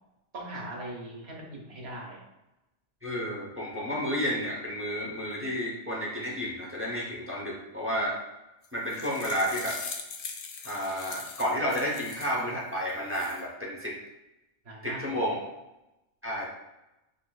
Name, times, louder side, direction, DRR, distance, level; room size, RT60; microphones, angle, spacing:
voice 1, 0.3-2.2 14.6-15.3, right 1 dB, 60° right, -2 dB, 1.2 m, -40 dB
voice 2, 3.0-8.2 8.7-9.8 10.6-14.0 14.8-15.4 16.2-16.5, equal, 15° right, -4 dB, 0.5 m, -31 dB
sound 1, 8.6-12.4 12.9-13.4, left 5 dB, 60° left, 0.6 m, -41 dB
5.9 x 2.4 x 2.2 m, 0.96 s
omnidirectional pair, 1.2 m